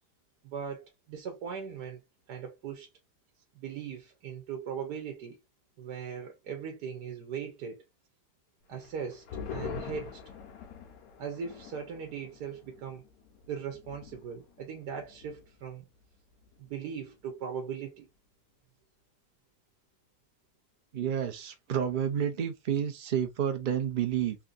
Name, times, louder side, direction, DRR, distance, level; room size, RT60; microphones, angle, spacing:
voice 1, 0.4-2.0 2.3-2.9 3.5-5.4 5.8-7.8 8.7-9.3 9.5-10.2 11.2-13.0 13.5-15.8 16.6-18.1, right 7 dB, 75° right, 1.5 m, -39 dB
sound 1, 8.7-15.6 15.9-16.0 16.4-16.9, left 6 dB, 65° left, 1.3 m, -45 dB
voice 2, 20.9-24.4, right 9 dB, 50° right, 0.6 m, -30 dB
3.5 x 2.8 x 2.4 m
omnidirectional pair, 1.8 m